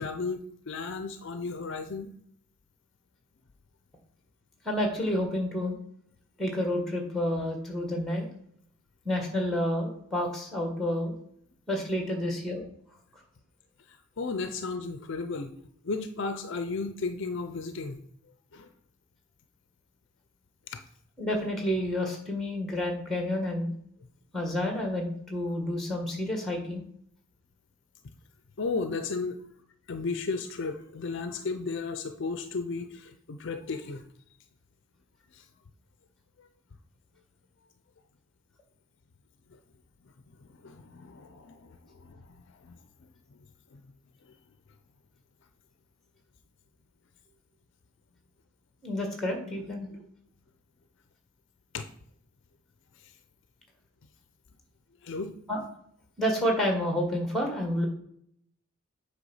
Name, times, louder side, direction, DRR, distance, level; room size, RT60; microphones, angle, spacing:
voice 1, 0.0-2.1 13.9-15.5 15.8-18.0 18.5-18.7 20.7-20.8 28.6-29.4 29.9-34.0 35.3-35.4 36.4-36.5 39.5-39.6 40.4-42.8 43.7-43.8 44.2-44.3 51.7-51.8 53.0-53.1 55.0-55.3, left 4 dB, 55° left, 8 dB, 0.5 m, -34 dB
voice 2, 4.6-5.7 6.4-8.3 9.0-11.1 11.7-12.7 21.2-23.7 24.3-26.8 48.8-50.0 55.5-55.6 56.2-57.9, left 1 dB, ahead, 2 dB, 1.5 m, -29 dB
7.9 x 3.4 x 5.5 m, 0.68 s
head